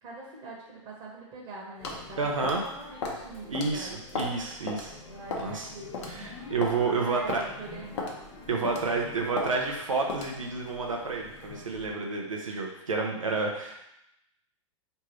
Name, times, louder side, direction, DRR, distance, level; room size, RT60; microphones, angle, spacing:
voice 1, 0.0-4.3 5.1-6.1 6.9-8.1 8.7-9.1, right 3 dB, 40° right, -3 dB, 1.3 m, -44 dB
sound 1, 1.8-2.0 2.4-2.7 3.0-3.2 3.5-3.7 4.1-4.4 4.7-4.8 5.3-5.5 5.9-6.1 6.6-6.8 7.3-7.4 8.0-8.2 8.6-8.9 9.4-9.5 10.1-10.3, left 4 dB, 60° left, 0.9 m, -33 dB
sound 2, 1.8-11.9, left 2 dB, 35° left, 1.3 m, -47 dB
voice 2, 2.2-2.6 3.5-5.0 5.4-5.7 6.1-7.4 8.5-13.9, right 4 dB, 80° right, 0 dB, 0.8 m, -30 dB
4.6 x 3.2 x 3.1 m, 0.82 s
figure-of-eight pair, 105°, 17 cm